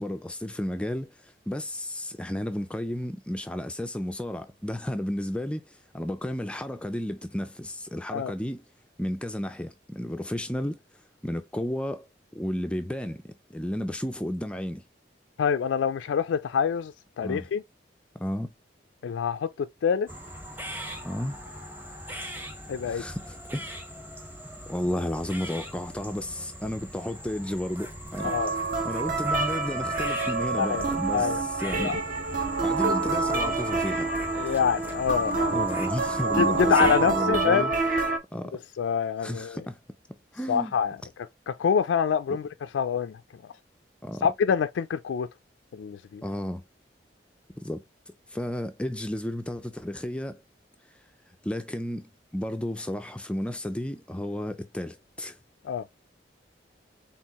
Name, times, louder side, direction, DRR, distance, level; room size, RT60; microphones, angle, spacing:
voice 1, 0.0-8.6 9.0-10.8 11.2-12.1 12.3-14.8 17.2-17.5 18.1-18.5 21.0-21.4 22.9-23.8 24.5-28.3 28.8-32.0 32.6-34.1 35.5-37.7 38.3-38.6 39.2-39.8 40.3-40.7 42.3-42.4 44.0-44.2 46.2-46.6 47.6-47.8 48.3-50.4 51.4-55.4, left 1 dB, 5° left, 0.3 m, -33 dB
voice 2, 15.4-17.6 19.0-20.1 22.7-23.0 28.2-28.5 30.6-30.9 31.1-31.9 34.3-35.7 36.3-37.7 38.8-39.6 40.5-41.0 41.5-43.2 44.2-45.3 45.7-46.2 55.6-55.8, left 7 dB, 85° left, 0.3 m, -26 dB
sound 1, 20.1-37.2, equal, 10° right, 0.9 m, -40 dB
sound 2, 28.2-38.2, right 3 dB, 45° right, 1.0 m, -27 dB
4.4 x 3.6 x 2.9 m
head